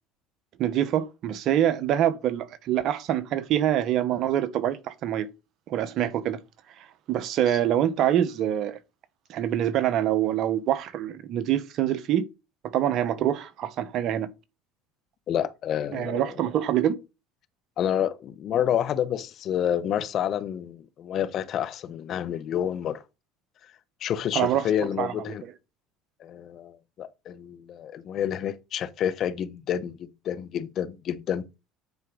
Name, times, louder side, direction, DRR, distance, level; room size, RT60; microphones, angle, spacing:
voice 1, 0.6-5.3 5.7-6.4 6.8-8.8 9.3-12.2 12.6-14.3 15.9-17.0 24.3-24.7 25.0-25.1 25.4-25.5, right 11 dB, 55° right, 1.1 m, -25 dB
voice 2, 15.3-16.5 17.8-23.0 24.0-25.4 26.2-31.4, left 9 dB, 50° left, 0.9 m, -29 dB
9.4 x 4.6 x 3.9 m
supercardioid pair, 95°, 0 cm